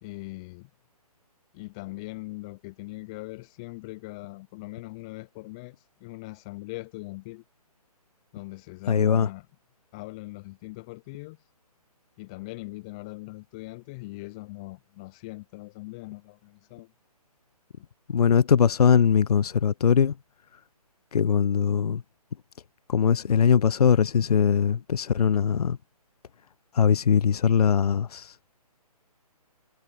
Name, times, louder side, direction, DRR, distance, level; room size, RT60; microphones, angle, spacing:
voice 1, 0.0-0.7 1.5-7.4 8.3-9.5 9.9-11.5 12.2-16.9, left 23 dB, 10° left, 0.3 m, -41 dB
voice 2, 8.9-9.3 18.1-20.1 21.1-22.0 22.9-25.8 26.7-28.3, left 7 dB, 75° left, 0.4 m, -21 dB
figure-of-eight pair, 140°, 20 cm